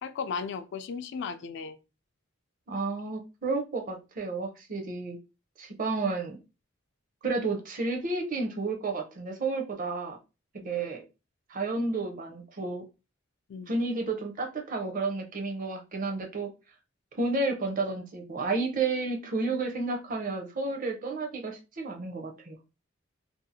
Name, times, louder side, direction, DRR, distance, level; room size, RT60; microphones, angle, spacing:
voice 1, 0.0-1.8 10.6-10.9 13.5-13.7, left 5 dB, 60° left, 0.3 m, -36 dB
voice 2, 2.7-5.2 5.6-6.4 7.2-10.2 10.6-11.0 11.5-12.8 13.7-16.5 17.1-22.6, right 3 dB, 40° right, 0.6 m, -31 dB
2.7 x 2.3 x 2.6 m
head